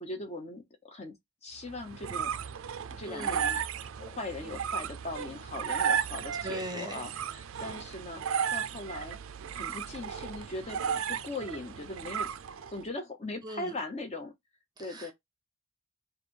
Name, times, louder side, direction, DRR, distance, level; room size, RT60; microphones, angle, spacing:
voice 1, 0.0-1.1 1.4-2.3 3.0-3.6 4.0-8.2 8.5-9.2 9.5-12.3 12.7-14.3 14.8-15.1, left 2 dB, 30° left, 0.7 m, -40 dB
sound 1, 1.7-12.8, right 7 dB, 65° right, 0.4 m, -34 dB
voice 2, 3.1-3.4 6.4-7.0 7.6-7.7 13.4-13.7 14.8-15.1, right 1 dB, 20° right, 0.7 m, -39 dB
3.3 x 2.5 x 4.4 m
head